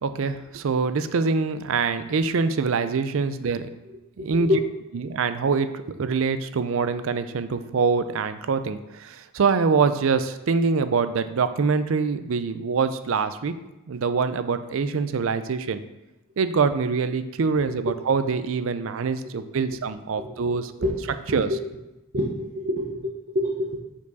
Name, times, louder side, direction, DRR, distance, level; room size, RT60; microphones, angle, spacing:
voice 1, 0.0-3.7 4.2-4.5 4.9-13.5 13.9-15.8 16.4-20.7 21.3-21.5, right 5 dB, 65° right, 11 dB, 0.4 m, -24 dB
voice 2, 4.2-4.6 17.8-17.9 20.2-21.6 22.1-23.8, left 1 dB, 45° right, -4 dB, 1.0 m, -27 dB
7.2 x 4.7 x 4.1 m, 0.96 s
head